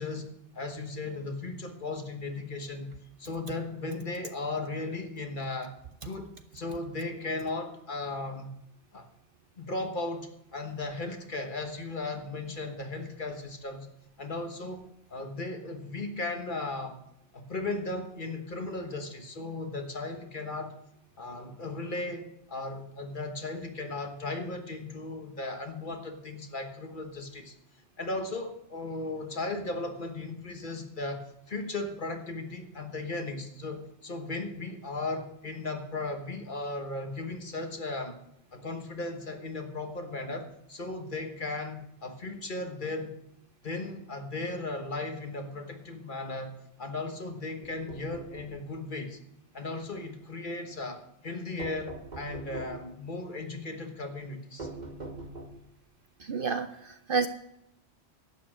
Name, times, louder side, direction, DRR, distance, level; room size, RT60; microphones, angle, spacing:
voice 1, 0.0-2.9 3.2-5.7 6.0-8.5 8.9-9.1 9.6-13.9 14.2-14.8 15.1-17.0 17.3-20.7 21.2-27.5 28.0-38.2 38.5-43.1 43.6-49.2 49.5-54.7, left 2 dB, 45° left, 5 dB, 1.4 m, -36 dB
sound 1, 47.6-48.6 51.6-52.9 54.6-55.8, right 3 dB, 40° right, 1.3 m, -42 dB
voice 2, 56.2-57.3, right 5 dB, 55° right, 10 dB, 0.7 m, -30 dB
11.5 x 8.6 x 6.2 m, 0.81 s
omnidirectional pair, 1.2 m